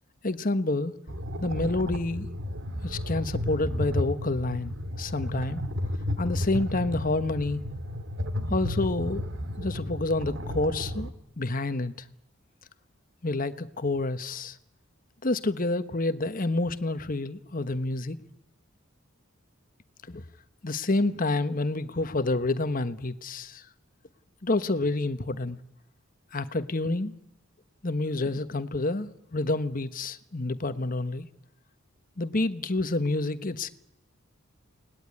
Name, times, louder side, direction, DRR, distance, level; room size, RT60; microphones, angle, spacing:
voice 1, 0.2-1.0 1.4-2.3 2.8-5.7 6.2-7.6 8.5-9.3 9.6-11.1 11.4-11.9 13.2-14.6 15.2-18.2 20.1-20.2 20.6-23.6 24.4-25.6 26.3-27.1 27.8-31.3 32.2-33.7, left 2 dB, 40° left, 1.2 m, -28 dB
sound 1, 1.1-11.1, left 1 dB, 60° right, 2.1 m, -33 dB
29.5 x 20.0 x 9.8 m
head